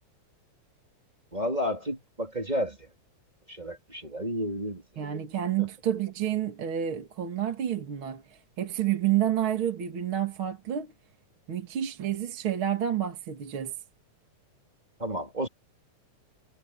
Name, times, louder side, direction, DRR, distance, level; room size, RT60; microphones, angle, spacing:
voice 1, 1.3-2.9 3.5-4.8 5.6-5.7 15.0-15.5, equal, 15° right, 2.9 m, -31 dB
voice 2, 5.0-10.9 11.5-13.7, right 10 dB, 45° right, 2.7 m, -29 dB
omnidirectional pair, 3.3 m